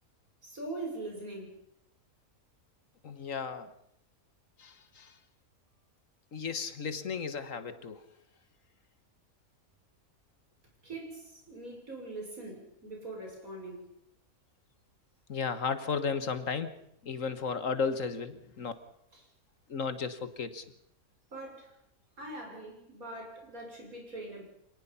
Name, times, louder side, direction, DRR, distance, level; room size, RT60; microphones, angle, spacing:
voice 1, 0.4-1.6 10.8-13.9 19.1-19.3 21.3-21.8 22.2-24.4, right 2 dB, 70° right, 6.9 m, -42 dB
voice 2, 3.0-3.7 4.6-5.2 6.3-8.0 15.3-16.8 17.0-18.7 19.7-20.6, left 5 dB, 60° left, 1.7 m, -34 dB
26.5 x 19.0 x 5.6 m
omnidirectional pair, 1.5 m